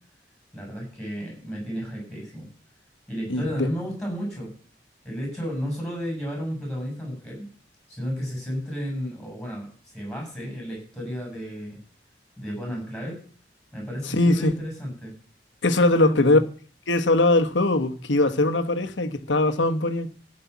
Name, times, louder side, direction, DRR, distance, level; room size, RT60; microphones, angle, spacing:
voice 1, 0.5-2.5 3.1-4.5 5.0-7.5 7.9-11.8 12.4-13.2 13.7-15.2 15.9-16.3, equal, 5° left, 7.2 m, -32 dB
voice 2, 3.3-3.7 14.0-14.5 15.6-16.4 16.9-20.1, left 2 dB, 90° left, 1.2 m, -21 dB
15.5 x 5.5 x 8.3 m
head